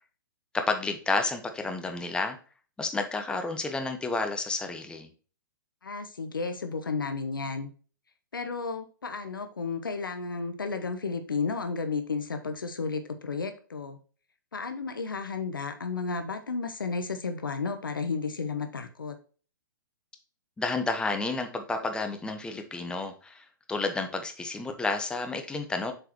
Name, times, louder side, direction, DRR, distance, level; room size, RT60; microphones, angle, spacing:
voice 1, 0.7-2.4 2.8-5.1 20.6-25.9, left 3 dB, 10° left, 5 dB, 1.0 m, -31 dB
voice 2, 5.8-7.7 8.3-14.0 14.5-19.2, left 4 dB, 80° left, 7 dB, 1.0 m, -33 dB
7.6 x 4.7 x 2.9 m, 0.37 s
figure-of-eight pair, 120°, 11 cm